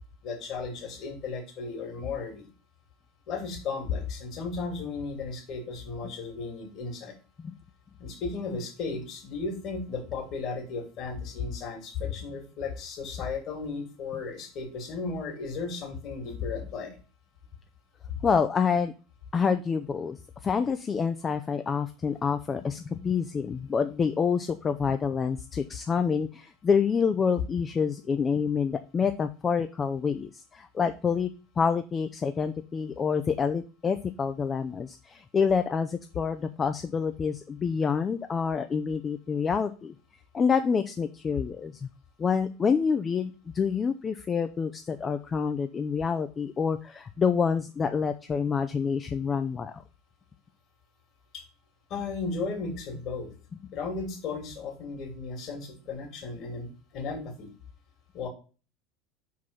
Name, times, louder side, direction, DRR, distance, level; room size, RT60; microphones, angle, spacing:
voice 1, 0.2-2.5 3.3-7.1 8.0-17.0 18.1-18.2 51.3-51.4 51.9-53.3 53.7-57.5 58.1-58.3, left 4 dB, 45° left, 3 dB, 2.9 m, -35 dB
voice 2, 18.2-18.9 19.3-20.2 20.4-31.3 31.6-39.9 40.3-41.9 42.2-49.7, left 6 dB, 25° left, 8 dB, 0.5 m, -27 dB
6.0 x 4.7 x 5.4 m, 0.34 s
figure-of-eight pair, 70°, 0 cm